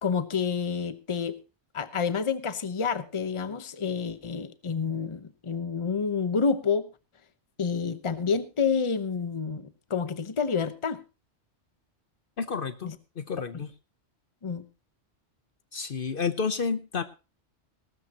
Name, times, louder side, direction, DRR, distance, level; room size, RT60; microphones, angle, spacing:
voice 1, 0.0-1.4 1.7-6.9 7.6-11.0 12.8-12.9 13.5-13.6 14.4-14.6, left 5 dB, 30° left, 13 dB, 0.9 m, -29 dB
voice 2, 12.4-13.7 15.7-17.0, left 5 dB, 55° left, 12 dB, 1.0 m, -30 dB
18.5 x 12.5 x 2.9 m, 0.31 s
omnidirectional pair, 1.2 m